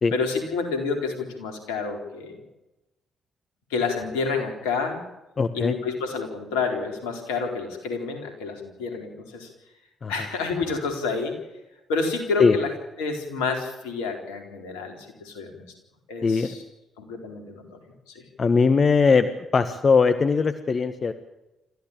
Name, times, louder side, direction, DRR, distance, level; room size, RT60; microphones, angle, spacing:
voice 1, 0.1-2.4 3.7-5.0 5.5-9.5 10.1-11.4 11.9-12.7 13.0-15.7 16.1-16.6 17.0-17.8 18.1-18.2, left 4 dB, 80° left, 5 dB, 4.1 m, -29 dB
voice 2, 5.4-5.7 10.0-10.1 12.4-12.5 16.2-16.5 18.4-19.3 19.5-21.1, left 5 dB, 45° left, 10 dB, 1.5 m, -20 dB
27.5 x 15.0 x 8.8 m, 1.0 s
hypercardioid pair, 40°, 0 cm